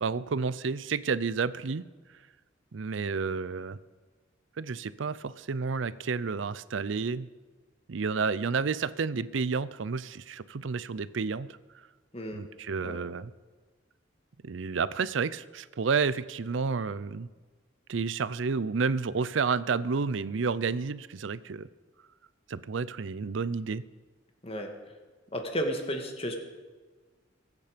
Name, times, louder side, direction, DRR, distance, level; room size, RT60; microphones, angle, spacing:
voice 1, 0.0-1.8 2.7-3.8 4.6-7.3 7.9-11.6 12.3-13.3 14.4-17.3 17.9-21.7 22.5-23.8, right 5 dB, 75° right, 17 dB, 0.5 m, -30 dB
voice 2, 25.3-26.4, equal, 30° left, 4 dB, 1.8 m, -32 dB
22.0 x 8.4 x 5.1 m, 1.3 s
head